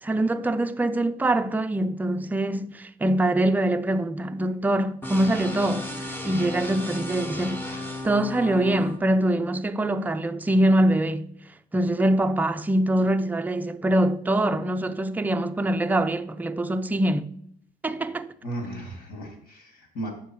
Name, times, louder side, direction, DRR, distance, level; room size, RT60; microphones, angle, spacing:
voice 1, 0.0-11.3 11.7-17.3 17.8-18.3, right 1 dB, 10° right, 0.4 m, -24 dB
sound 1, 5.0-9.0, left 2 dB, 10° left, 1.2 m, -34 dB
voice 2, 18.4-20.1, right 1 dB, 60° left, 2.3 m, -35 dB
6.9 x 5.5 x 4.5 m
cardioid pair, 110°, 17 cm